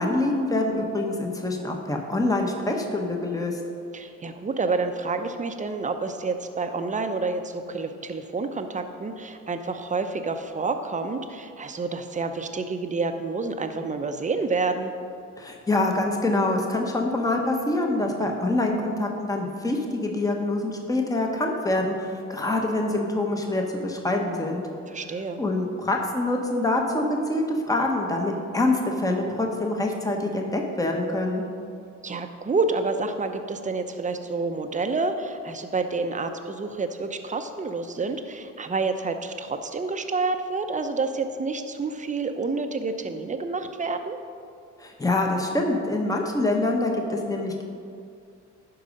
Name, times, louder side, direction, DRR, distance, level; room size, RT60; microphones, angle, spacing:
voice 1, 0.0-3.6 15.4-24.6 25.4-31.4 44.8-47.6, left 2 dB, 10° left, 2 dB, 1.1 m, -25 dB
voice 2, 3.9-14.9 24.9-25.4 32.0-44.2, right 3 dB, 25° right, 7 dB, 0.7 m, -28 dB
11.5 x 4.7 x 5.3 m, 2.4 s
cardioid pair, 90°, 30 cm